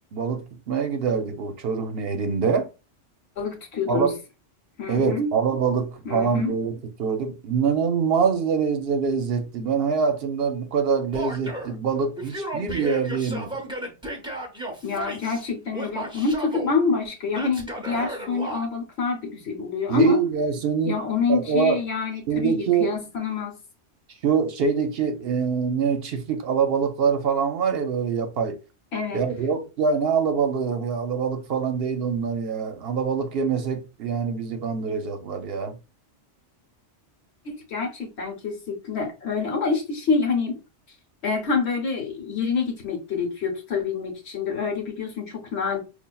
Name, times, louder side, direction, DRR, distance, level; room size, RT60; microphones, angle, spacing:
voice 1, 0.1-2.7 3.9-4.2 4.9-13.6 19.9-21.0 21.3-21.8 22.3-22.9 24.2-28.6 29.1-35.8, right 6 dB, 60° right, 0.8 m, -24 dB
voice 2, 3.4-4.1 4.8-5.3 6.0-6.6 14.8-20.2 20.8-23.6 28.9-29.2 37.4-40.6 41.2-45.8, left 5 dB, 65° left, 1.2 m, -26 dB
Male speech man speaking / Yell, 11.1-11.7 12.2-15.4 15.7-16.7 17.3-18.6, right 1 dB, 5° right, 0.7 m, -34 dB
5.4 x 2.5 x 2.2 m
omnidirectional pair, 1.2 m